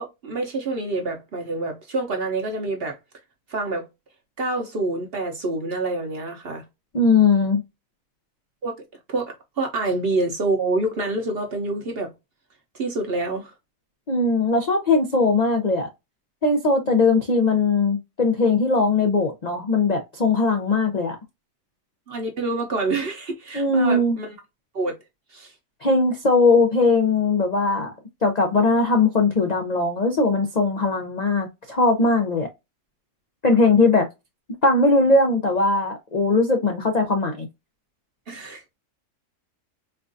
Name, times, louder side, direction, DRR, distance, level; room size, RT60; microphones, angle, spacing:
voice 1, 0.0-3.0 3.5-3.8 4.4-6.6 8.6-8.8 9.1-12.1 12.7-13.5 16.8-17.1 22.1-24.4 24.7-24.9 25.3-25.5 38.3-38.6, right 2 dB, 50° right, 0.8 m, -27 dB
voice 2, 6.9-7.6 14.1-15.9 16.4-21.2 23.5-24.2 25.8-27.9 28.2-32.5 33.4-34.1 34.6-37.5, left 3 dB, 70° left, 0.4 m, -20 dB
4.5 x 2.4 x 2.5 m
omnidirectional pair, 1.7 m